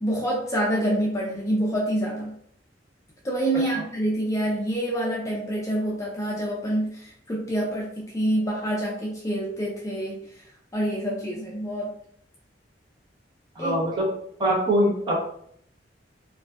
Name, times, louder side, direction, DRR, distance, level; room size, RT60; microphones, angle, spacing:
voice 1, 0.0-2.4 3.2-10.5 10.7-11.9 13.6-13.8, right 1 dB, 15° left, -3 dB, 0.3 m, -27 dB
voice 2, 13.6-14.1 14.4-15.2, equal, 25° right, -4 dB, 0.6 m, -23 dB
2.5 x 2.2 x 2.2 m, 0.68 s
head